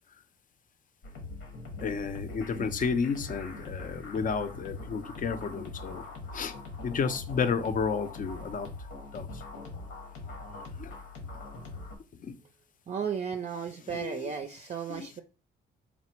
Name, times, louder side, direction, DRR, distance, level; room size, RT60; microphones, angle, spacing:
sound 1, 1.0-11.9, left 3 dB, 85° left, 1.3 m, -42 dB
voice 1, 1.8-6.0 6.3-6.5 6.8-8.7 9.1-9.3 10.8-10.9 12.2-12.3 13.9-14.3 14.9-15.1, left 5 dB, 40° left, 0.5 m, -31 dB
voice 2, 12.9-15.2, right 7 dB, 35° right, 0.5 m, -34 dB
4.1 x 2.0 x 4.4 m
cardioid pair, 90°, 20 cm